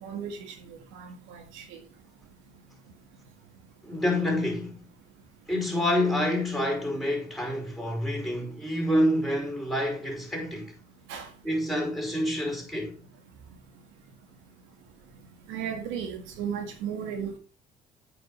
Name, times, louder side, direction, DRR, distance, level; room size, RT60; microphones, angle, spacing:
voice 1, 0.0-1.8 11.1-11.3 15.5-17.4, right 7 dB, 90° right, 1.9 m, -35 dB
voice 2, 3.8-4.8 5.5-10.7 11.4-12.9, left 1 dB, ahead, 5.2 m, -27 dB
8.4 x 6.0 x 5.5 m
supercardioid pair, 80°, 19 cm